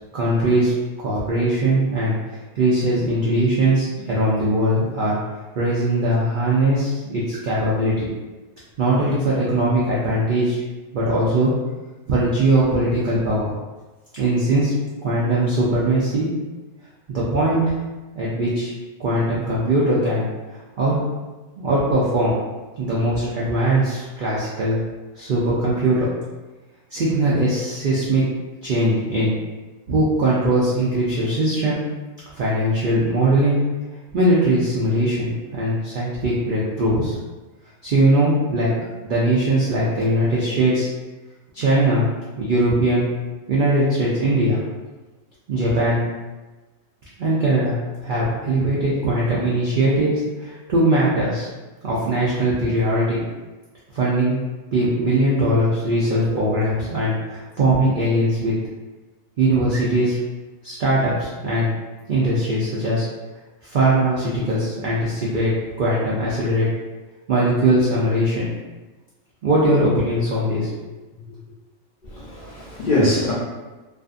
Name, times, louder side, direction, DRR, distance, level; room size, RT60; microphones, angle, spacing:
voice 1, 0.1-0.7 1.0-2.1 2.6-5.2 5.6-8.1 8.8-10.6 10.9-11.5 12.1-13.5 14.1-14.7 15.0-16.3 17.1-17.8 18.1-18.7 19.0-21.0 21.6-22.4 22.8-24.8 25.2-26.1 26.9-28.2 28.6-29.4 29.9-31.8 32.4-33.6 34.1-37.2 37.8-38.7 39.0-40.9 41.5-42.1 42.4-43.1 43.5-44.6 45.5-46.0 47.2-51.5 51.8-53.2 53.9-54.4 54.7-58.5 59.4-60.2 60.6-61.7 62.1-63.1 63.6-65.5 65.8-66.7 67.3-68.5 69.4-70.7, right 1 dB, 70° right, -7 dB, 0.5 m, -20 dB
voice 2, 72.0-73.3, left 1 dB, 50° left, -8 dB, 0.6 m, -22 dB
2.5 x 2.5 x 2.4 m, 1.2 s
omnidirectional pair, 1.4 m